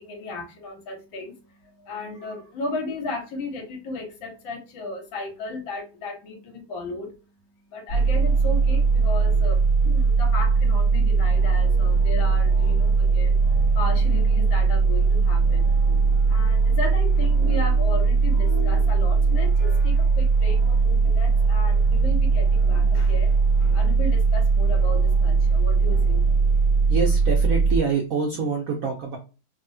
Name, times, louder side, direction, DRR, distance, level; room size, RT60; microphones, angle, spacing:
voice 1, 0.0-7.1 7.7-15.8 16.3-26.2, left 2 dB, 75° left, 3 dB, 1.4 m, -35 dB
sound 1, 7.9-27.8, right 4 dB, 50° right, 1.0 m, -19 dB
voice 2, 26.9-29.2, right 5 dB, 80° right, 0 dB, 0.7 m, -26 dB
3.4 x 2.1 x 2.6 m, 0.32 s
omnidirectional pair, 2.2 m